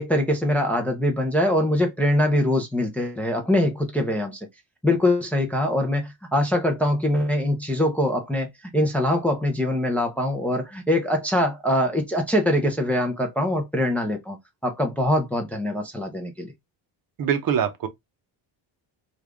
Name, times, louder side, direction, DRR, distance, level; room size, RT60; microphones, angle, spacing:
voice 1, 0.0-4.4 4.8-14.4 14.6-16.5, left 1 dB, 5° left, 0.5 m, -23 dB
voice 2, 17.2-17.9, right 8 dB, 45° right, 0.8 m, -23 dB
3.2 x 2.5 x 3.4 m
cardioid pair, 150°, 46 cm